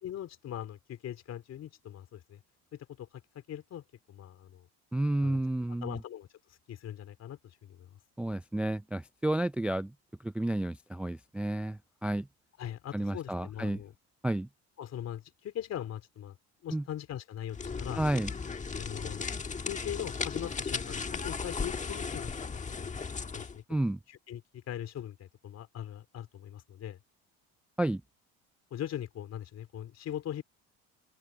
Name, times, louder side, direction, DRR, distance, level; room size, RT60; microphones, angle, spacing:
voice 1, 0.0-2.4 2.7-4.7 5.2-5.4 5.8-7.9 12.6-13.9 14.8-16.4 16.6-18.0 18.7-19.3 19.6-22.9 23.3-23.6 24.1-27.0 28.7-30.4, left 11 dB, 50° left, 3.6 m, -41 dB
voice 2, 4.9-6.0 8.2-9.9 10.2-12.3 12.9-13.8 14.2-14.5 16.7-16.8 18.0-18.3 23.7-24.0 27.8-28.0, right 1 dB, 5° right, 0.3 m, -31 dB
sound 1, 17.5-23.6, left 5 dB, 25° left, 1.4 m, -36 dB
open air
supercardioid pair, 90°, 32 cm